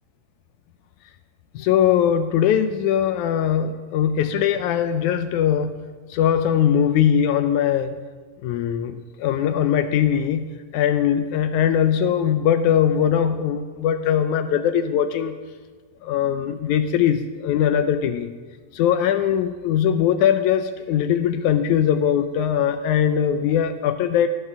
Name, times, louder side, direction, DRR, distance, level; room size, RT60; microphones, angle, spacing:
voice 1, 1.6-5.7 6.1-7.9 8.4-10.5 10.7-15.4 16.0-18.3 18.7-24.3, left 9 dB, 80° left, 9 dB, 1.8 m, -21 dB
15.5 x 9.4 x 6.1 m, 1.4 s
omnidirectional pair, 3.8 m